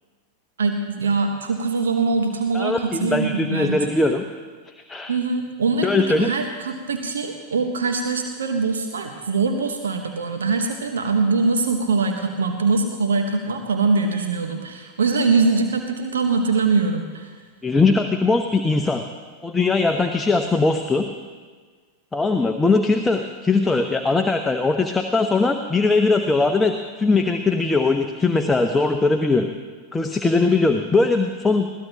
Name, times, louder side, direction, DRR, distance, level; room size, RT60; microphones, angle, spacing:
voice 1, 0.6-4.1 5.1-17.3, right 4 dB, 65° right, 4 dB, 1.2 m, -23 dB
voice 2, 2.5-4.2 4.7-5.2 5.8-6.3 17.6-19.0 19.4-21.0 22.1-29.5 29.9-31.7, left 3 dB, 10° left, 5 dB, 0.8 m, -20 dB
21.5 x 16.5 x 2.9 m, 1.5 s
figure-of-eight pair, 90°, 0 cm